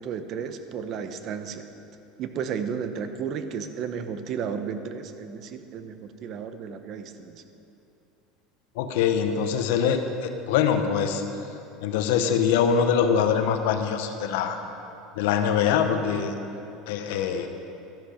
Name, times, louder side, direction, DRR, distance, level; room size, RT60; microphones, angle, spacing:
voice 1, 0.0-1.6 2.2-7.4, right 7 dB, 45° right, 9 dB, 0.8 m, -33 dB
voice 2, 8.8-11.2 11.8-14.6 15.2-16.4 16.9-17.5, left 7 dB, 80° left, 7 dB, 0.9 m, -23 dB
12.5 x 10.0 x 5.1 m, 2.8 s
supercardioid pair, 125°, 0 cm